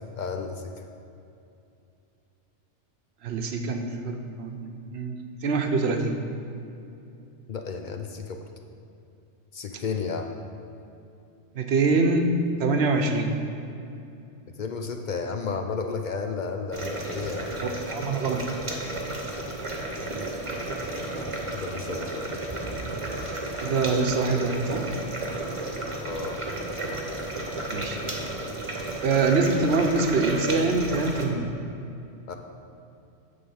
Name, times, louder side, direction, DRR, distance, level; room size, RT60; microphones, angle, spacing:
voice 1, 0.2-0.7 7.5-8.5 9.5-10.3 14.6-17.5 21.1-22.3 26.0-26.4 32.3-32.4, left 5 dB, 60° left, 5 dB, 0.5 m, -33 dB
voice 2, 3.2-5.1 5.4-6.1 11.6-12.3 12.6-13.3 17.6-18.6 23.6-24.8 27.7-28.0 29.0-31.5, right 3 dB, 65° right, 4 dB, 0.9 m, -25 dB
sound 1, 16.7-31.3, right 2 dB, 30° right, 1.0 m, -32 dB
9.5 x 3.7 x 7.0 m, 2.7 s
omnidirectional pair, 1.3 m